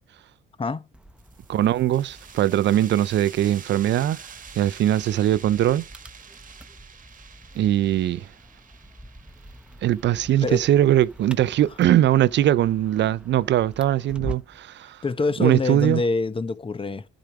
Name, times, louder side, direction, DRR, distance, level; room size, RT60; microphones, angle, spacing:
sound 1, 0.9-14.7, equal, 5° right, 0.9 m, -45 dB
sound 2, 1.2-12.5, right 6 dB, 40° right, 1.3 m, -47 dB
voice 1, 1.5-4.2 4.6-5.8 7.6-8.3 9.8-15.0 15.4-16.0, right 12 dB, 65° right, 0.5 m, -21 dB
voice 2, 15.0-17.1, left 3 dB, 25° left, 0.9 m, -25 dB
10.5 x 4.9 x 5.9 m
cardioid pair, 90°, 20 cm